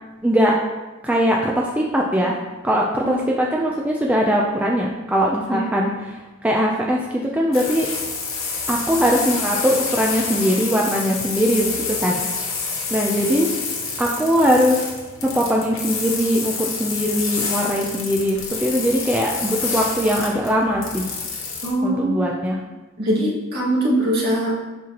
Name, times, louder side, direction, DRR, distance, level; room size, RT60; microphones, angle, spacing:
voice 1, 0.2-0.5 1.0-2.4 2.6-7.9 8.7-12.2 12.9-13.5 14.0-14.9 15.2-21.1 21.8-22.6, equal, 5° right, -2 dB, 0.4 m, -21 dB
sound 1, 7.5-21.7, left 5 dB, 70° left, 1.4 m, -28 dB
voice 2, 21.6-22.3 23.0-24.6, right 1 dB, 50° right, -6 dB, 1.9 m, -22 dB
7.4 x 5.5 x 2.9 m, 1.2 s
head